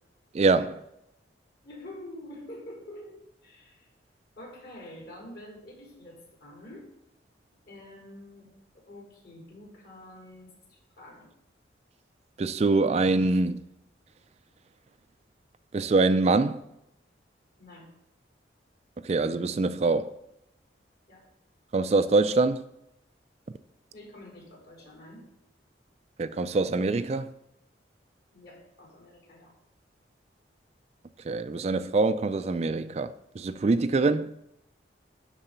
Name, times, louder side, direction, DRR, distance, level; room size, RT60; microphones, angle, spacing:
voice 1, 0.3-0.8 12.4-13.6 15.7-16.6 19.0-20.1 21.7-22.6 26.2-27.3 31.2-34.3, right 3 dB, 35° right, 0.3 m, -24 dB
voice 2, 1.6-3.9 4.4-6.9 7.7-8.5 8.9-11.3 17.6-17.9 21.1-21.2 23.9-25.2 28.3-29.5, left 1 dB, 60° left, 4.0 m, -47 dB
11.5 x 4.1 x 6.8 m
head